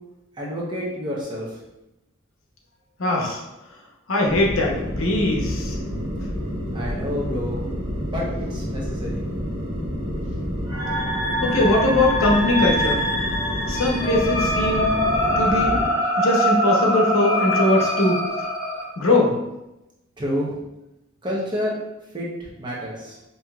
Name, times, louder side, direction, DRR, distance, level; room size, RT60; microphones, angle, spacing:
voice 1, 0.4-1.6 6.7-7.6 8.1-9.2 20.2-20.6 21.2-21.7 22.1-23.2, equal, 20° right, -5 dB, 0.8 m, -29 dB
voice 2, 3.0-3.4 4.1-5.8 11.4-13.1 13.7-14.9 15.4-15.8 16.2-18.2 19.0-19.3, left 1 dB, 75° left, -1 dB, 0.8 m, -21 dB
sound 1, 4.3-15.9, equal, 85° right, 1.3 m, -29 dB
sound 2, 10.7-18.8, left 1 dB, 15° left, 0.8 m, -23 dB
5.5 x 2.8 x 2.3 m, 0.93 s
head